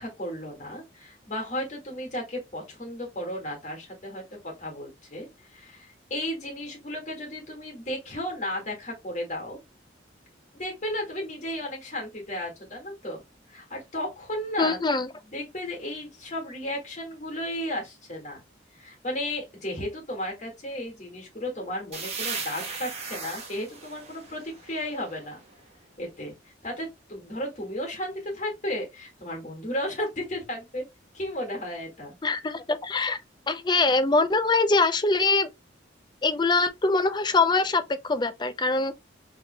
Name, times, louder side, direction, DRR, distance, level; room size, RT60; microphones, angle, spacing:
voice 1, 0.0-9.6 10.6-13.2 13.5-14.8 15.3-18.4 18.7-25.4 26.0-26.3 26.6-30.9 31.1-32.1, left 1 dB, 40° left, 1.8 m, -34 dB
voice 2, 14.6-15.1 32.2-33.2 33.5-35.5 36.2-38.9, left 3 dB, 25° left, 0.4 m, -23 dB
sound 1, 21.9-25.5, right 4 dB, 35° right, 1.1 m, -37 dB
4.7 x 3.6 x 2.2 m
head